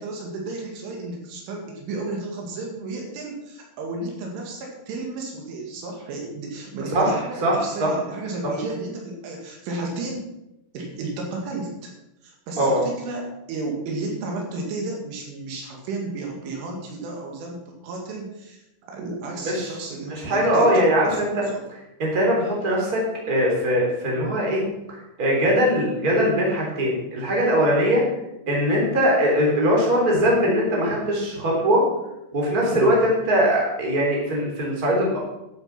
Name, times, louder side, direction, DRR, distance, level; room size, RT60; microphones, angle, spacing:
voice 1, 0.0-10.3 10.7-11.9 12.2-21.2 21.4-21.6 32.7-33.0, right 2 dB, 75° right, 0 dB, 4.6 m, -33 dB
voice 2, 6.9-7.9 12.6-12.8 19.4-19.6 20.1-24.6 24.9-28.0 28.5-31.8 32.3-35.2, equal, 20° right, -3 dB, 3.5 m, -21 dB
12.0 x 8.2 x 6.1 m, 0.88 s
omnidirectional pair, 5.7 m